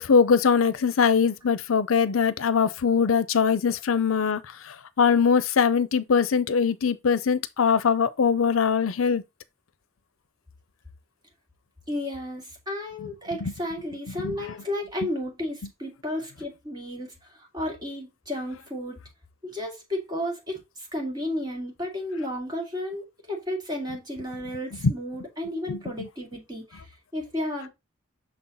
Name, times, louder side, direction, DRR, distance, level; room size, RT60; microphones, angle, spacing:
voice 1, 0.0-4.4 5.0-9.2 13.4-13.5 14.2-14.3 25.7-25.8, left 6 dB, 90° left, 0.6 m, -22 dB
voice 2, 11.9-19.0 19.4-27.7, left 1 dB, 20° right, 2.2 m, -33 dB
6.4 x 3.9 x 4.0 m
head